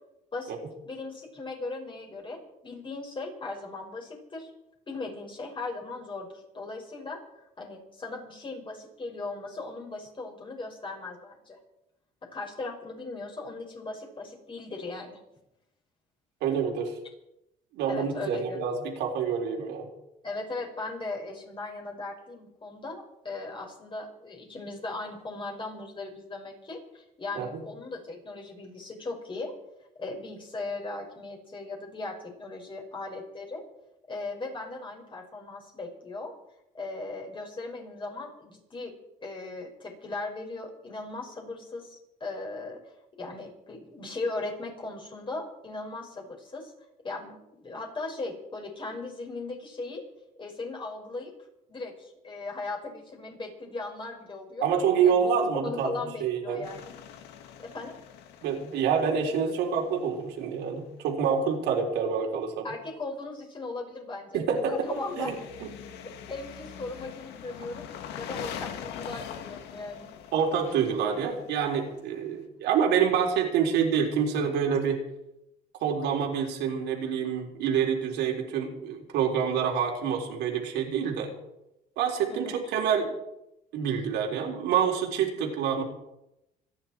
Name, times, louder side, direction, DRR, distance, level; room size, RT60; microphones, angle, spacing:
voice 1, 0.3-4.5 4.9-7.2 7.6-11.6 12.2-15.2 17.9-18.6 20.2-29.6 30.0-33.6 34.1-36.3 36.7-38.9 39.2-42.8 43.2-46.7 47.0-50.0 50.4-51.3 51.7-54.7 55.0-56.9 57.6-57.9 62.6-65.3 66.3-67.9 68.2-70.1 82.3-82.6, left 3 dB, 30° left, 0 dB, 5.9 m, -38 dB
voice 2, 16.4-17.0 17.7-19.9 27.3-27.6 54.6-55.9 56.2-56.7 58.4-62.7 64.3-64.7 65.2-65.7 70.3-75.0 75.8-81.3 82.0-83.1 83.7-85.8, right 7 dB, 90° right, 1 dB, 3.8 m, -27 dB
sound 1, 56.6-60.5 64.6-72.3, left 9 dB, 85° left, 1.8 m, -43 dB
27.0 x 10.5 x 4.6 m, 0.86 s
cardioid pair, 110°, 17 cm